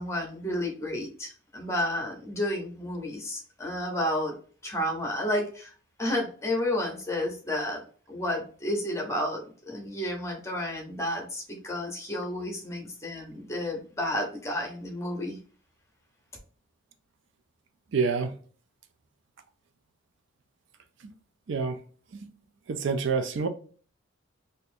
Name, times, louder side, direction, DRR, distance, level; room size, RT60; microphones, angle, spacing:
voice 1, 0.0-4.3 4.6-5.7 6.0-15.4, left 1 dB, 15° left, 0.9 m, -31 dB
voice 2, 17.9-18.3 21.0-21.1 21.5-21.8 22.1-22.3 22.7-23.5, right 5 dB, 60° right, 0.4 m, -27 dB
4.1 x 2.6 x 2.7 m
head